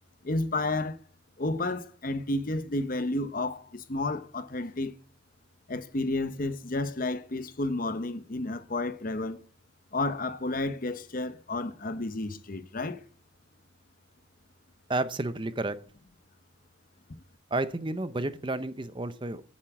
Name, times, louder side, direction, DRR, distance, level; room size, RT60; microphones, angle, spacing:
voice 1, 0.2-1.0 1.4-4.9 5.7-9.4 9.9-13.0, left 2 dB, 45° left, 0.8 m, -31 dB
voice 2, 14.9-15.8 17.5-19.4, right 2 dB, 25° right, 0.6 m, -31 dB
9.5 x 7.3 x 8.0 m
head